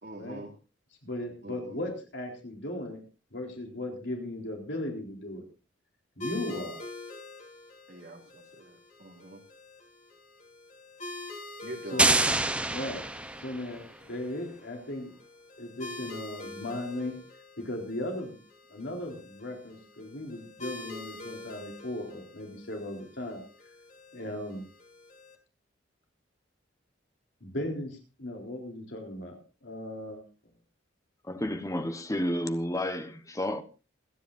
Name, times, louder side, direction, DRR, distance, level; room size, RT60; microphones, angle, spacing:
voice 1, 0.0-0.5 1.4-1.8 7.9-9.4 11.6-12.2, right 1 dB, 60° right, 3.1 m, -45 dB
voice 2, 1.0-3.0 3.3-5.4 6.2-6.9 11.9-12.2 12.7-13.0 13.4-15.1 15.6-17.2 17.6-18.4 18.7-23.4 24.1-24.6 27.4-30.2, left 1 dB, 65° left, 3.8 m, -37 dB
sound 1, 6.2-25.3, left 2 dB, 40° left, 3.3 m, -46 dB
sound 2, 12.0-13.8, right 2 dB, 5° right, 0.7 m, -26 dB
voice 3, 31.2-33.6, left 1 dB, 15° left, 1.1 m, -31 dB
28.5 x 10.5 x 2.6 m
head